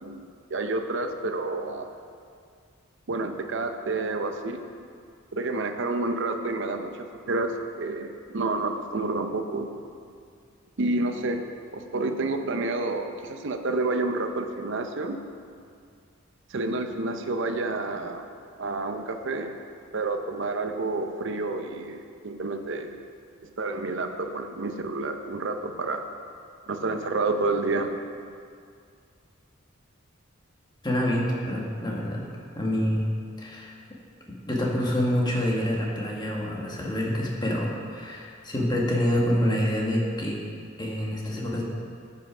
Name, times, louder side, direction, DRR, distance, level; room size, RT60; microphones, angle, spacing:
voice 1, 0.0-1.9 3.1-4.7 5.3-9.7 10.8-11.4 11.7-15.2 16.5-18.3 18.6-19.6 19.9-23.0 23.6-26.0 26.7-27.9, right 2 dB, 60° right, 6 dB, 0.7 m, -29 dB
voice 2, 30.8-32.2 32.5-33.1 33.4-33.7 34.5-40.4 40.8-41.6, equal, 20° left, -2 dB, 1.5 m, -26 dB
13.0 x 5.7 x 4.9 m, 2.3 s
head